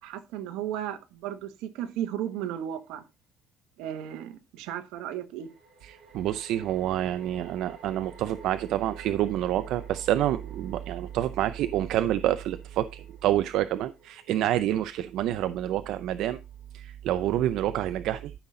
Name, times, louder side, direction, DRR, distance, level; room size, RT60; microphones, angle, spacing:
voice 1, 0.0-3.0 3.8-5.5, right 10 dB, 90° right, 1.4 m, -35 dB
sound 1, 2.4-2.5 5.4-16.8, right 5 dB, 35° right, 6.7 m, -53 dB
voice 2, 5.8-16.4 16.7-18.3, right 12 dB, 70° right, 0.5 m, -28 dB
13.0 x 5.8 x 3.8 m
cardioid pair, 130°, 0 cm